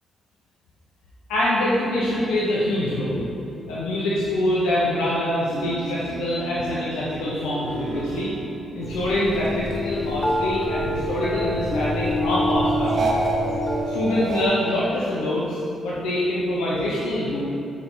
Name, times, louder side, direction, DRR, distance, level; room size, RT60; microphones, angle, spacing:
voice 1, 1.3-3.2 3.7-8.3 8.7-13.1 13.9-17.4, left 1 dB, 85° left, -6 dB, 0.9 m, -24 dB
sound 1, 5.5-9.4 9.7-11.3 12.8-14.5, right 2 dB, 50° right, 1.1 m, -31 dB
wind chimes birds squirrel, 8.8-13.9, left 1 dB, 30° left, 1.0 m, -26 dB
8.2 x 4.6 x 4.0 m, 2.7 s
supercardioid pair, 55°, 0 cm